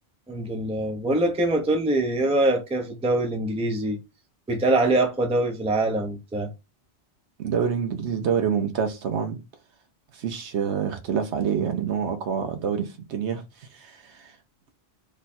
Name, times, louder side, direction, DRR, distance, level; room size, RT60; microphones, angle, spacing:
voice 1, 0.3-4.0 4.5-6.5, right 2 dB, 10° right, 0.4 m, -24 dB
voice 2, 7.4-9.4 10.1-13.4 13.7-14.3, right 7 dB, 70° right, 1.0 m, -27 dB
3.1 x 2.3 x 4.1 m
omnidirectional pair, 1.2 m